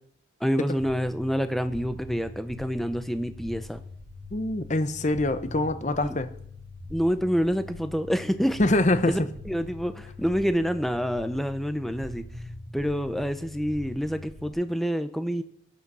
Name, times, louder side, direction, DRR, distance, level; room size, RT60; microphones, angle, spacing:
voice 1, 0.4-3.8 6.0-6.2 6.9-8.6 9.1-9.2 9.5-12.2 12.7-15.4, equal, ahead, 10 dB, 0.7 m, -27 dB
sound 1, 0.8-14.5, left 2 dB, 35° right, 4.2 m, -42 dB
voice 2, 4.3-6.3 8.6-9.2, left 2 dB, 35° left, 11 dB, 0.8 m, -24 dB
16.5 x 10.0 x 5.5 m, 0.69 s
head